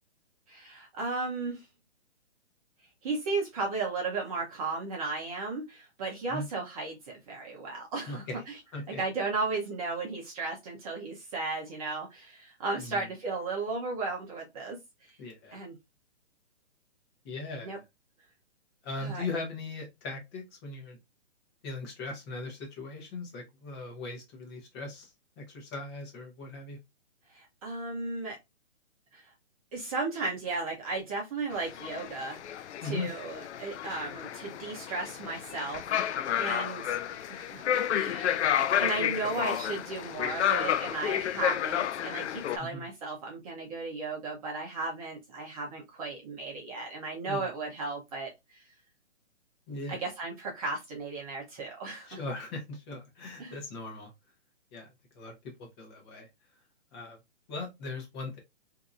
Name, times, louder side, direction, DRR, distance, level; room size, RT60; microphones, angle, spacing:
voice 1, 0.5-1.7 3.0-8.6 9.0-14.8 15.5-15.7 17.6-17.8 19.0-19.3 27.3-28.4 29.1-29.3 29.7-48.6 49.9-52.2 53.4-53.6, right 3 dB, 30° right, 0.9 m, -35 dB
voice 2, 8.1-8.4 8.7-9.0 12.8-13.0 15.2-15.6 17.2-17.8 18.8-21.0 21.6-25.1 25.4-26.8 32.8-33.1 42.6-42.9 47.2-47.5 49.7-50.0 52.1-54.1 54.7-54.9 55.1-55.3 55.6-56.3 56.9-57.2 57.5-58.4, left 3 dB, 20° left, 1.0 m, -39 dB
sound 1, 31.5-42.6, left 10 dB, 75° left, 0.5 m, -31 dB
3.6 x 2.8 x 2.5 m
hypercardioid pair, 155°, 35 cm